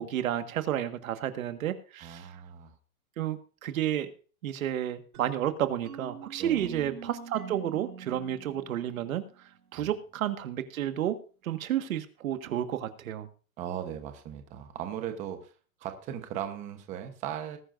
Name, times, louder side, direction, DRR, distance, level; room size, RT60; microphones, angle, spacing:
voice 1, 0.0-2.3 3.2-4.1 4.4-9.2 9.7-11.2 11.4-13.3, right 11 dB, 70° right, 9 dB, 1.7 m, -31 dB
voice 2, 2.0-2.7 6.4-6.9 9.8-9.9 13.6-15.5 15.8-17.6, right 10 dB, 15° right, 7 dB, 1.0 m, -38 dB
sound 1, 5.1-9.8, right 6 dB, 90° right, 5.7 m, -45 dB
20.0 x 10.0 x 2.6 m, 0.38 s
supercardioid pair, 175°, 43 cm